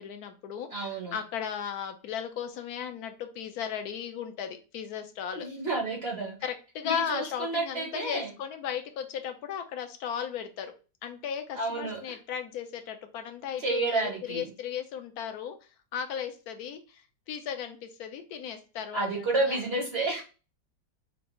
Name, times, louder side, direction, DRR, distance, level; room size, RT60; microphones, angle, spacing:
voice 1, 0.0-5.5 6.4-10.7 11.0-19.1 19.4-19.6, left 8 dB, 65° left, 7 dB, 1.0 m, -36 dB
voice 2, 0.7-1.2 5.4-6.4 6.8-8.3 11.5-12.2 13.6-14.5 18.9-20.2, right 3 dB, 45° right, 0 dB, 0.8 m, -30 dB
6.0 x 2.4 x 3.0 m, 0.33 s
omnidirectional pair, 2.0 m